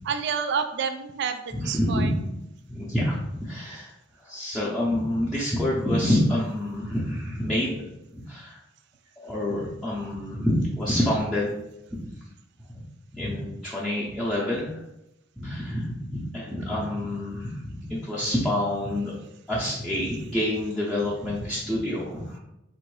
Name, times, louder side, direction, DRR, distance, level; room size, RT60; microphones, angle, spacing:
voice 1, 0.1-2.1, right 6 dB, 60° right, 7 dB, 0.3 m, -29 dB
voice 2, 1.5-2.4 2.7-3.9 4.2-7.8 8.1-8.6 9.2-11.5 12.0-12.1 12.7-12.8 13.1-14.7 15.4-19.1 19.5-22.4, left 1 dB, ahead, -9 dB, 0.6 m, -27 dB
3.7 x 2.6 x 4.7 m, 0.87 s
head